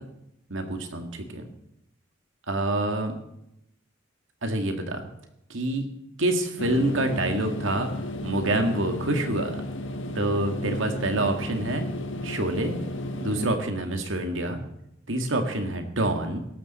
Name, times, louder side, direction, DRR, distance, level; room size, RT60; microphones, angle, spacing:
voice 1, 0.5-1.4 2.5-3.2 4.4-5.1 5.5-5.9 6.2-7.9 8.2-9.6 10.2-11.9 12.2-12.8 13.2-14.6 15.1-16.4, right 1 dB, 70° right, 5 dB, 2.0 m, -27 dB
sound 1, 6.6-13.5, left 1 dB, 70° left, 1.6 m, -33 dB
17.5 x 13.5 x 4.3 m, 0.81 s
head